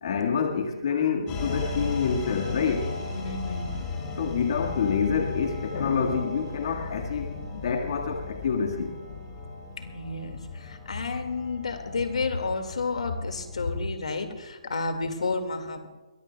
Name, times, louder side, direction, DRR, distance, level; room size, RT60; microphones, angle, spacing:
voice 1, 0.0-2.9 4.2-8.9, left 6 dB, 55° left, 2 dB, 1.7 m, -27 dB
sound 1, 1.3-14.3, left 4 dB, 25° left, 5.0 m, -36 dB
voice 2, 3.1-3.7 9.8-15.9, left 3 dB, 85° left, 7 dB, 2.0 m, -31 dB
22.5 x 20.5 x 2.3 m, 1.1 s
hypercardioid pair, 150°, 4 cm